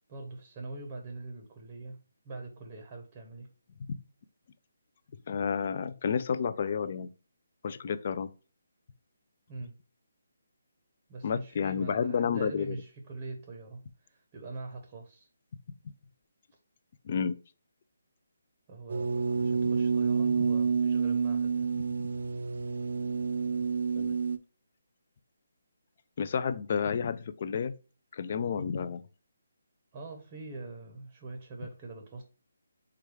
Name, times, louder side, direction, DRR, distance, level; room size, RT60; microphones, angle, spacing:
voice 1, 0.1-3.5 9.5-9.8 11.1-15.3 18.7-21.7 29.9-32.2, right 3 dB, 20° right, 0.7 m, -43 dB
voice 2, 5.3-7.1 7.6-8.3 11.2-12.8 17.0-17.4 24.0-24.2 26.2-27.7 28.1-29.0, left 6 dB, 35° left, 0.3 m, -30 dB
sound 1, 18.9-24.4, right 5 dB, 65° right, 0.5 m, -29 dB
4.8 x 2.3 x 4.7 m
hypercardioid pair, 170°, 0 cm